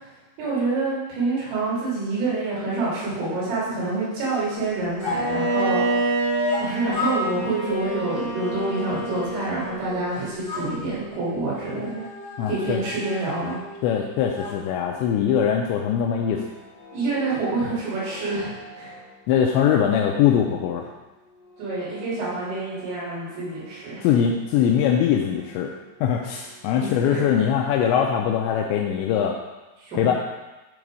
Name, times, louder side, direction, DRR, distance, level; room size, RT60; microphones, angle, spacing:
voice 1, 0.0-6.2 6.6-12.0 12.5-13.6 16.9-19.0 21.6-24.1 26.8-27.2 29.8-30.1, right 3 dB, 85° right, -9 dB, 5.7 m, -27 dB
sound 1, 5.0-6.7 6.9-10.0 10.4-14.5, equal, 30° left, 2.0 m, -32 dB
Bowed string instrument, 5.1-10.1, right 1 dB, 65° right, 4.0 m, -28 dB
voice 2, 12.4-12.8 13.8-16.5 19.3-20.8 24.0-25.7 26.0-29.4 30.0-30.1, left 8 dB, 85° left, 1 dB, 2.6 m, -22 dB
sound 2, 15.9-27.0, equal, 60° left, 3.2 m, -47 dB
10.0 x 4.0 x 4.9 m, 1.1 s
omnidirectional pair, 5.6 m